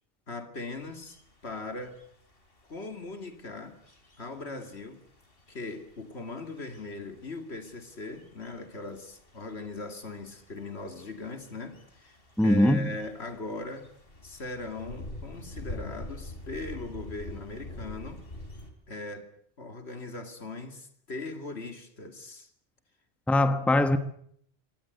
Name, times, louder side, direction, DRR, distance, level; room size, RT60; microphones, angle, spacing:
voice 1, 0.3-2.0 2.7-3.8 4.2-5.0 5.5-13.9 14.2-18.2 18.9-19.3 19.6-22.5, left 3 dB, 75° left, 2.7 m, -39 dB
sound 1, 0.6-18.7, left 1 dB, 60° left, 3.5 m, -47 dB
voice 2, 12.4-12.9 23.3-24.0, left 1 dB, ahead, 1.1 m, -21 dB
25.0 x 18.0 x 8.1 m
omnidirectional pair, 1.1 m